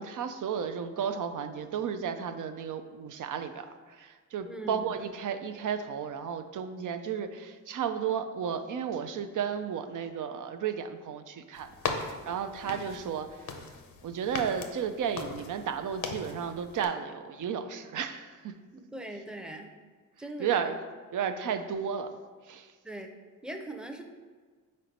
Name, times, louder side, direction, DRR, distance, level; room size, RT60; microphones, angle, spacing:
voice 1, 0.0-13.7 14.0-18.5 20.4-20.8 21.1-22.2 22.5-22.7, right 7 dB, 65° right, 9 dB, 0.5 m, -33 dB
voice 2, 4.4-4.9 12.7-12.8 18.7-19.7 20.2-20.7 22.8-23.1 23.4-24.0, right 1 dB, 5° right, 4 dB, 0.6 m, -41 dB
sound 1, 11.5-16.9, left 5 dB, 85° left, 0.7 m, -39 dB
4.4 x 4.1 x 5.2 m, 1.5 s
cardioid pair, 80°, 33 cm